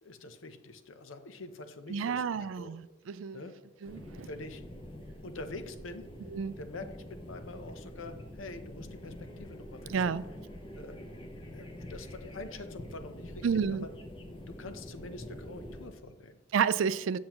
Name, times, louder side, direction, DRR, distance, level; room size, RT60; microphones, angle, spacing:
voice 1, 0.0-2.7 3.3-3.6 4.1-4.6 5.2-6.1 6.6-10.2 10.7-13.9 14.5-16.4, left 2 dB, 70° left, 9 dB, 0.7 m, -45 dB
voice 2, 1.9-3.4 3.8-4.3 6.3-6.5 9.9-10.2 13.4-13.9 16.5-17.2, right 6 dB, 65° right, 16 dB, 0.3 m, -30 dB
sound 1, 3.9-15.9, left 1 dB, 25° left, 0.8 m, -46 dB
8.6 x 7.2 x 3.0 m, 1.1 s
head